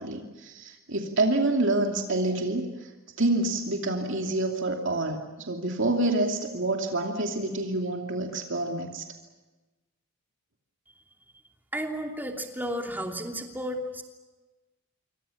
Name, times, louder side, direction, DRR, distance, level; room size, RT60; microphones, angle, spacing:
voice 1, 0.0-2.9 3.2-9.0, right 2 dB, 55° right, 3 dB, 2.7 m, -27 dB
voice 2, 11.7-14.0, equal, 10° right, 3 dB, 2.9 m, -33 dB
27.0 x 25.0 x 7.2 m, 1.2 s
head